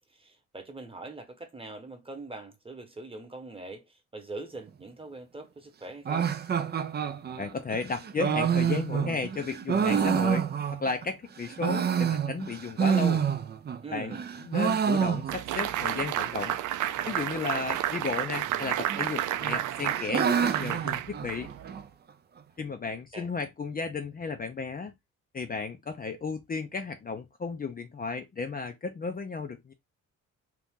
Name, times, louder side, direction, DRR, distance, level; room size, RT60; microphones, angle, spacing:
voice 1, 0.1-6.3 13.8-14.3 23.1-23.3, right 3 dB, 20° right, 1.1 m, -42 dB
sound 1, 6.1-11.1 11.4-13.8 14.1-15.7 15.9-16.0 16.2-16.3 17.0-17.4 18.4-19.0 19.4-21.8, right 7 dB, 35° right, 0.5 m, -28 dB
voice 2, 7.4-13.2 13.9-14.2 14.5-16.6 17.1-21.5 22.6-24.9 25.3-29.7, left 4 dB, 30° left, 0.6 m, -34 dB
sound 2, 15.3-21.7, right 12 dB, 80° right, 0.5 m, -31 dB
2.9 x 2.5 x 3.6 m
cardioid pair, 90°, 30 cm